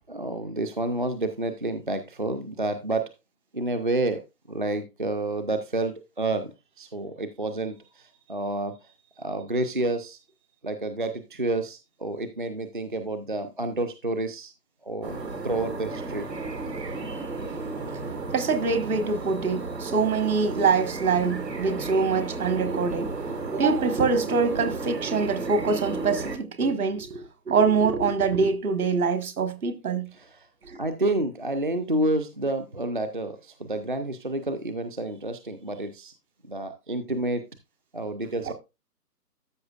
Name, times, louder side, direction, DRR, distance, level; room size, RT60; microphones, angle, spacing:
voice 1, 0.1-3.1 3.5-4.2 4.5-10.2 10.6-14.5 14.8-16.3 30.1-30.5 30.8-36.1 36.5-37.4 37.9-38.5, right 2 dB, 35° right, 0.5 m, -29 dB
sound 1, 15.0-26.4, right 3 dB, 80° right, 2.3 m, -33 dB
voice 2, 18.3-23.1 23.5-30.1 30.6-30.8 38.5-38.6, right 5 dB, 60° right, 1.7 m, -24 dB
13.0 x 5.9 x 2.4 m
figure-of-eight pair, 150°, 48 cm